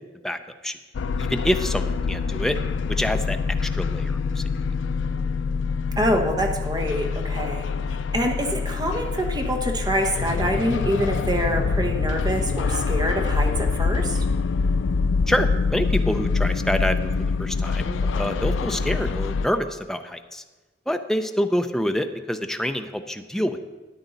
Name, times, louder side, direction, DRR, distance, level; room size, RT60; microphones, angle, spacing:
voice 1, 0.2-0.8 1.2-2.6 2.9-3.4 3.7-4.4 15.3-17.1 17.4-20.4 20.9-23.7, equal, 5° left, 7 dB, 0.5 m, -26 dB
sound 1, 0.9-19.5, left 4 dB, 80° left, 0.4 m, -25 dB
voice 2, 6.0-14.2, equal, 20° right, 3 dB, 1.2 m, -26 dB
13.0 x 9.4 x 4.0 m, 1.2 s
head